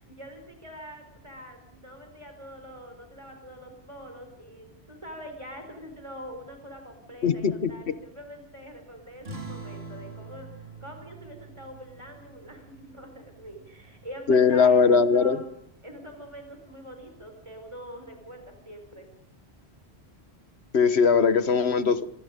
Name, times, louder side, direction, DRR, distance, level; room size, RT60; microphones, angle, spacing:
voice 1, 0.0-15.5 15.8-19.1, equal, 25° right, 4 dB, 4.8 m, -44 dB
voice 2, 7.2-7.9 14.3-15.4 20.7-22.1, left 5 dB, 70° left, 12 dB, 1.5 m, -20 dB
sound 1, 9.2-14.3, right 3 dB, 65° right, 3.6 m, -44 dB
27.0 x 23.5 x 5.2 m, 0.73 s
omnidirectional pair, 1.1 m